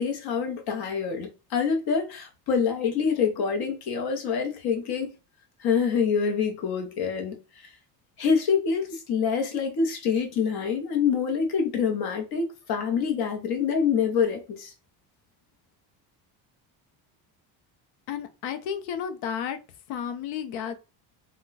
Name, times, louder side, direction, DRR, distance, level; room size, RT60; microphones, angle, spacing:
voice 1, 0.0-5.2 5.6-7.7 8.2-14.7, left 6 dB, 55° left, 0.9 m, -26 dB
voice 2, 18.1-19.6 19.9-20.7, left 8 dB, 85° left, 0.6 m, -32 dB
2.2 x 2.2 x 3.9 m
cardioid pair, 150°, 45 cm